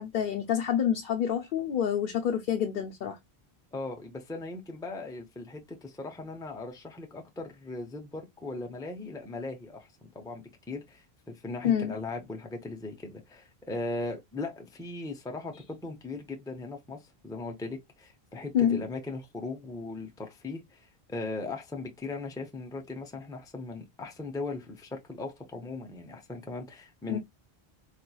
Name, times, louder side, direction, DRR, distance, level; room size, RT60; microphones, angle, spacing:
voice 1, 0.0-3.2 11.6-11.9 18.5-18.8 27.1-27.2, left 9 dB, 60° left, 0.7 m, -27 dB
voice 2, 3.7-27.2, left 3 dB, 5° left, 0.5 m, -38 dB
4.1 x 3.0 x 2.3 m
omnidirectional pair, 1.0 m